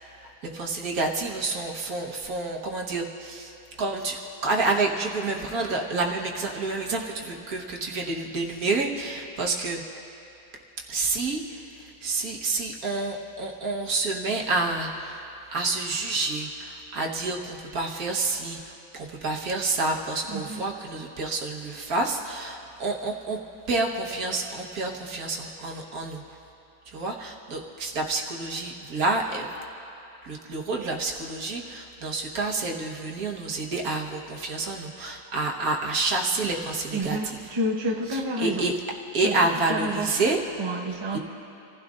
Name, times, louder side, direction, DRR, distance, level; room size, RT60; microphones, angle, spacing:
voice 1, 0.4-9.8 10.9-23.4 23.7-26.4 26.9-29.5 30.2-37.4 38.1-38.7 39.1-40.4 41.1-41.2, right 3 dB, 60° right, 0 dB, 1.7 m, -29 dB
voice 2, 36.9-38.7 39.2-39.4 39.6-40.1 40.6-41.2, right 1 dB, 25° right, 1 dB, 0.6 m, -29 dB
27.0 x 15.5 x 2.5 m, 2.8 s
omnidirectional pair, 1.8 m